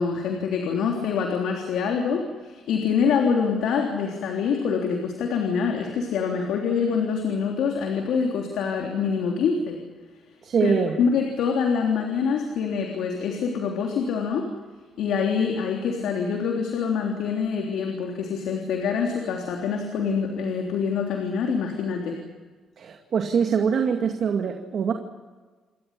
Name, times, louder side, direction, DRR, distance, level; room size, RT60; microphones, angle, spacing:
voice 1, 0.0-9.8 10.6-14.4 15.0-22.2, left 6 dB, 80° left, 1 dB, 3.4 m, -25 dB
voice 2, 10.4-11.0 22.8-24.9, right 6 dB, 60° right, 3 dB, 2.3 m, -23 dB
28.5 x 13.5 x 10.0 m, 1.3 s
cardioid pair, 90°, 0 cm